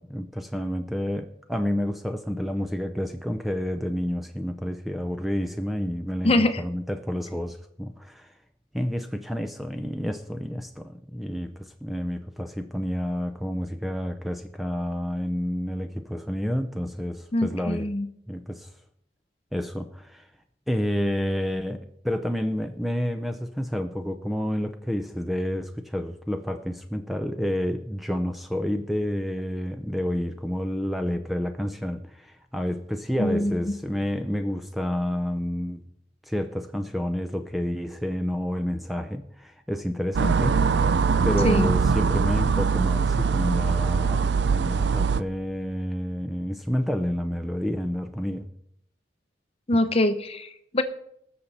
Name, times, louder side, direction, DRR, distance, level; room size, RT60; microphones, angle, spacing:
voice 1, 0.0-8.3 8.7-17.9 18.3-18.7 19.5-20.3 20.7-21.8 22.0-35.8 36.3-40.9 41.2-48.5, equal, ahead, 6 dB, 0.5 m, -29 dB
voice 2, 6.2-6.6 17.3-18.1 33.2-33.5 41.4-41.7 49.7-50.8, left 1 dB, 30° left, 10 dB, 0.8 m, -23 dB
sound 1, 40.1-45.2, right 5 dB, 70° right, 0.4 m, -22 dB
20.0 x 6.7 x 4.2 m, 0.72 s
head